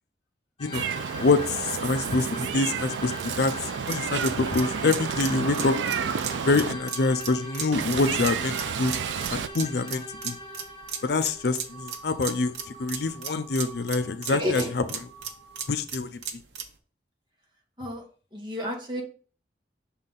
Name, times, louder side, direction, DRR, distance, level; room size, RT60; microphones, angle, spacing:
sound 1, 0.6-15.8, left 1 dB, 30° left, 1.1 m, -42 dB
Meow, 0.7-6.7 7.7-9.5, right 7 dB, 90° right, 0.4 m, -31 dB
voice 1, 1.2-2.3 2.5-3.1 3.4-3.5 3.9-5.8 6.4-8.9 9.3-10.4 11.0-12.5 12.8-15.1 15.7-16.2, left 3 dB, 60° left, 10 dB, 0.5 m, -25 dB
sound 2, 3.9-16.8, right 7 dB, 70° right, 0.9 m, -37 dB
voice 2, 14.3-14.7 17.8-18.0 18.3-19.0, left 1 dB, 25° right, 0 dB, 1.6 m, -30 dB
6.2 x 4.0 x 4.0 m, 0.41 s
head